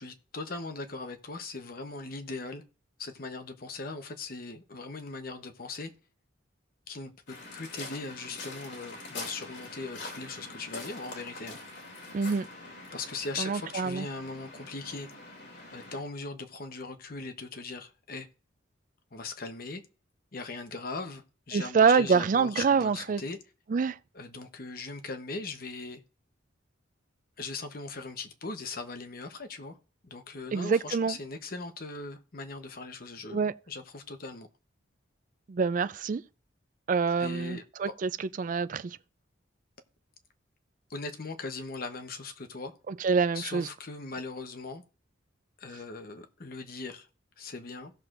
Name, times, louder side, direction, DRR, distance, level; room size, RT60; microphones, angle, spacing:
voice 1, 0.0-2.6 3.0-5.9 6.9-11.6 12.9-15.1 15.7-18.3 19.1-19.8 20.3-23.4 24.1-26.0 27.4-29.8 30.0-34.5 37.2-37.6 40.9-42.7 43.3-44.8 45.6-47.1 47.4-47.9, left 3 dB, 50° left, 1.0 m, -39 dB
Waves surf, 7.3-16.0, left 2 dB, 65° left, 2.7 m, -44 dB
voice 2, 12.1-12.5 13.4-14.1 21.5-23.2 23.7-24.0 30.5-31.1 33.3-33.5 35.5-36.2 36.9-39.0 42.9-43.7, right 5 dB, 40° right, 0.3 m, -26 dB
17.0 x 6.3 x 2.5 m
head